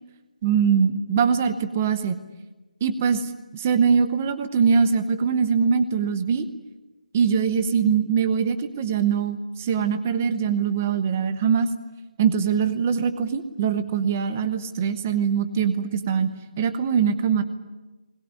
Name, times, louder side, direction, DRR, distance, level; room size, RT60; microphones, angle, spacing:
voice 1, 0.4-2.2 2.8-3.3 3.5-6.5 7.1-11.7 12.2-16.3 16.6-17.4, right 6 dB, 15° right, 11 dB, 0.8 m, -22 dB
21.0 x 21.0 x 9.5 m, 1.1 s
hypercardioid pair, 180°, 4 cm